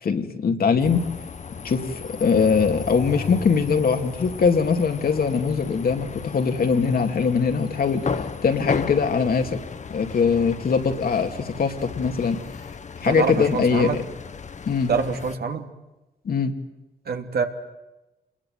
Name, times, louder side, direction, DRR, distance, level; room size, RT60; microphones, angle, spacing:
voice 1, 0.0-1.0 1.6-9.6 9.9-12.4 13.0-14.0 14.6-14.9 16.2-16.5, left 5 dB, 60° left, 5 dB, 2.5 m, -22 dB
sound 1, 0.8-15.4, left 5 dB, 45° left, 1.1 m, -35 dB
voice 2, 13.0-14.0 14.9-15.7 17.1-17.4, right 5 dB, 70° right, 5 dB, 2.6 m, -25 dB
27.0 x 21.0 x 9.4 m, 1.0 s
wide cardioid pair, 110°, 17 cm